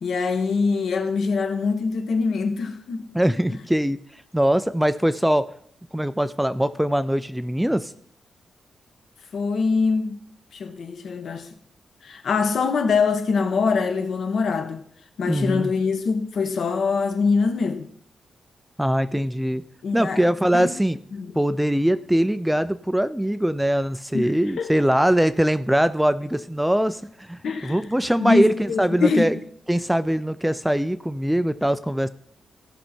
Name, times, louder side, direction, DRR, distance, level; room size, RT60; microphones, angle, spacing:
voice 1, 0.0-3.0 9.3-10.2 10.5-11.5 12.0-14.8 15.2-17.9 19.8-20.2 20.5-20.7 21.1-21.3 24.1-24.9 27.4-29.3, left 4 dB, 70° left, 1.2 m, -24 dB
voice 2, 3.1-4.0 4.3-5.5 5.9-7.9 15.3-15.7 18.8-19.6 19.9-21.0 21.4-29.4 29.7-32.1, equal, 5° right, 0.3 m, -22 dB
15.5 x 5.5 x 4.4 m
wide cardioid pair, 145°, 0 cm